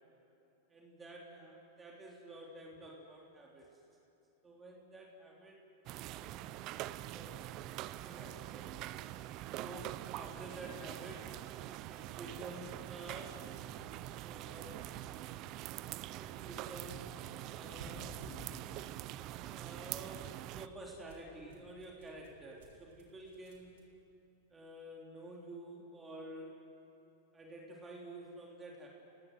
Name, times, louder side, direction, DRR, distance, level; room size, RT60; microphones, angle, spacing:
voice 1, 0.7-3.7 4.4-5.6 6.1-6.5 7.1-7.7 8.0-8.7 9.5-11.3 11.9-13.5 14.2-15.0 16.1-18.2 19.3-23.8 24.5-26.6 27.3-28.9, right 1 dB, 15° right, -2 dB, 3.2 m, -50 dB
sound 1, 5.9-20.7, right 15 dB, 45° right, 0.6 m, -44 dB
sound 2, 12.6-13.1 13.4-15.6 16.9-19.0 19.6-23.8, right 3 dB, 75° right, 5.9 m, -55 dB
27.5 x 17.5 x 8.0 m, 2.9 s
hypercardioid pair, 125°, 0 cm